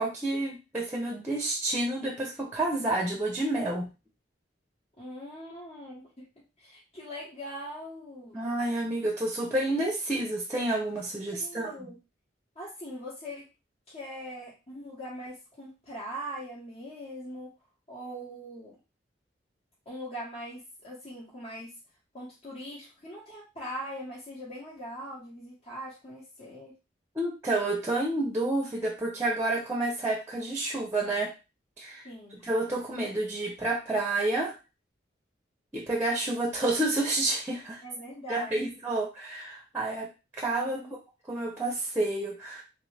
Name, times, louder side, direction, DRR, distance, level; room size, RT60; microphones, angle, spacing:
voice 1, 0.0-3.9 8.3-11.7 27.1-31.3 31.8-34.5 35.7-37.8 38.3-40.1 40.3-40.8 41.3-42.6, right 2 dB, 10° right, 0 dB, 0.7 m, -29 dB
voice 2, 5.0-6.3 6.6-8.4 11.3-12.0 12.5-13.5 13.9-17.5 17.9-18.8 19.8-21.7 22.1-26.7 32.0-32.4 37.8-38.7 40.6-40.9, equal, 35° left, -7 dB, 1.2 m, -41 dB
3.3 x 2.5 x 3.3 m, 0.28 s
head